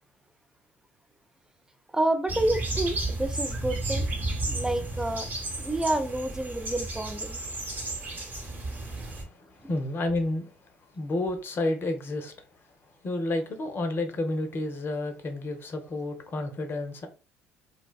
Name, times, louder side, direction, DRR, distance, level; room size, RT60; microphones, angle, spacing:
voice 1, 1.9-4.1 4.4-5.3 5.6-7.4, right 1 dB, 10° right, 0.4 m, -29 dB
sound 1, 2.3-9.2, right 2 dB, 30° right, 1.0 m, -33 dB
voice 2, 8.6-10.5 10.9-12.3 13.0-17.1, left 2 dB, 35° left, 0.7 m, -31 dB
2.4 x 2.2 x 2.3 m
hypercardioid pair, 60°, 6 cm